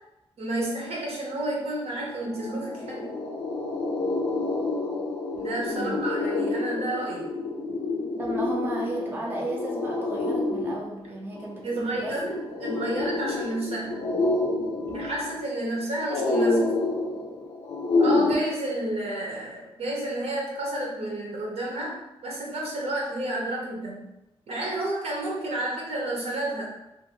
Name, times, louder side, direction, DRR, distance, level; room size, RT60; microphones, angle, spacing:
voice 1, 0.4-3.1 5.4-7.3 11.6-14.0 14.9-16.8 18.0-24.1 24.5-26.7, right 1 dB, 70° right, -3 dB, 0.8 m, -31 dB
sound 1, 1.8-1.9 2.1-18.3, left 2 dB, 85° left, 0.5 m, -28 dB
voice 2, 8.2-12.2, right 1 dB, 20° right, -3 dB, 0.5 m, -33 dB
2.6 x 2.5 x 2.8 m, 0.91 s
wide cardioid pair, 110°, 11 cm